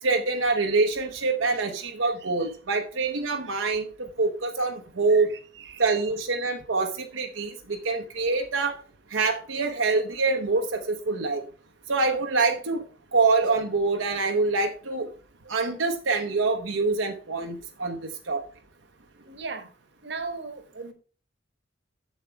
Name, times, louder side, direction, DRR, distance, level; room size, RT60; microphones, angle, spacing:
voice 1, 0.0-5.3 5.8-8.8 9.1-11.4 11.9-12.8 13.1-15.1 15.5-18.4, right 3 dB, 85° right, 0.9 m, -25 dB
voice 2, 5.6-6.0 15.4-15.5 19.3-19.7 20.0-20.9, right 4 dB, 60° right, 1.2 m, -37 dB
7.3 x 7.3 x 4.5 m
head